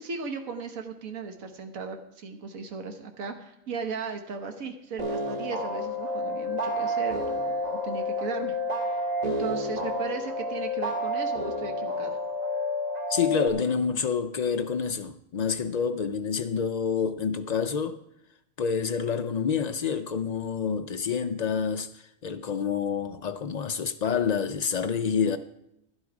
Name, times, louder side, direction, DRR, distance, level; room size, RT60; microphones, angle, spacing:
voice 1, 0.0-12.2, right 5 dB, 90° right, 1.5 m, -37 dB
sound 1, 5.0-13.5, left 1 dB, 30° right, 2.0 m, -30 dB
voice 2, 13.1-18.0 18.6-25.4, left 6 dB, 80° left, 0.3 m, -28 dB
12.0 x 10.5 x 4.9 m
omnidirectional pair, 1.4 m